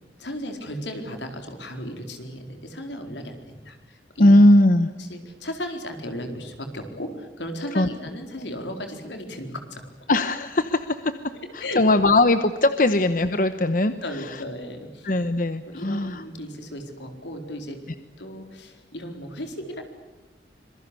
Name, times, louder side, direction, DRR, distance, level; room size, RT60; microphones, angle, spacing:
voice 1, 0.2-4.4 5.0-9.8 11.6-11.8 14.0-15.1 15.7-17.8 18.2-19.8, equal, 80° left, 5 dB, 4.4 m, -35 dB
voice 2, 4.2-4.9 7.7-7.9 10.1-11.1 11.5-13.9 14.3-14.4 15.0-16.2, left 1 dB, 50° left, 10 dB, 1.0 m, -19 dB
26.0 x 22.5 x 8.4 m, 1.1 s
head